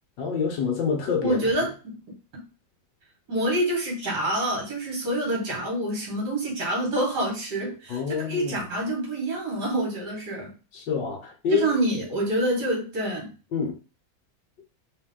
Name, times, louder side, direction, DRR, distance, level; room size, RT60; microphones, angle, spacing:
voice 1, 0.2-1.4 7.9-8.6 10.7-11.7 13.5-13.8, left 6 dB, 70° left, 1.5 m, -27 dB
voice 2, 1.2-1.9 3.3-10.5 11.5-13.3, right 1 dB, 60° right, 2.1 m, -27 dB
3.5 x 3.3 x 3.7 m
omnidirectional pair, 2.1 m